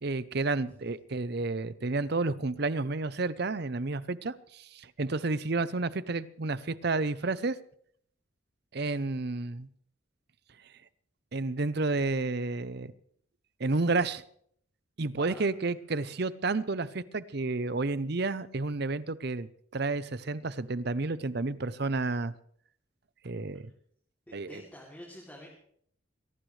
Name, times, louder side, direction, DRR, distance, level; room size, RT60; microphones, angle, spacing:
voice 1, 0.0-7.6 8.7-9.7 11.3-12.9 13.6-14.2 15.0-19.5 19.7-22.3 23.2-23.7 24.3-24.6, right 3 dB, 50° right, 0.7 m, -31 dB
voice 2, 15.2-15.5 24.3-25.5, equal, 10° left, 2.9 m, -48 dB
22.5 x 18.0 x 3.3 m
head